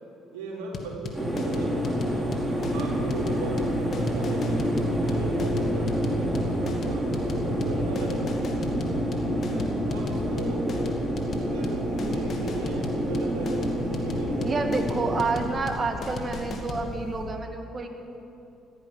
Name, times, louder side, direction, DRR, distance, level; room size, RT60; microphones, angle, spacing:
voice 1, 0.3-4.6 5.0-8.5 9.8-14.6, right 3 dB, 90° right, -2 dB, 2.9 m, -37 dB
sound 1, 0.7-16.8, left 4 dB, 55° left, 2.2 m, -36 dB
sound 2, 1.1-15.3, equal, 10° right, 4.1 m, -28 dB
sound 3, 1.7-17.2, equal, 80° left, 4.4 m, -41 dB
voice 2, 9.5-9.8 14.4-17.9, right 3 dB, 35° right, 5 dB, 2.1 m, -29 dB
15.5 x 14.0 x 6.3 m, 2.9 s
supercardioid pair, 60°, 0 cm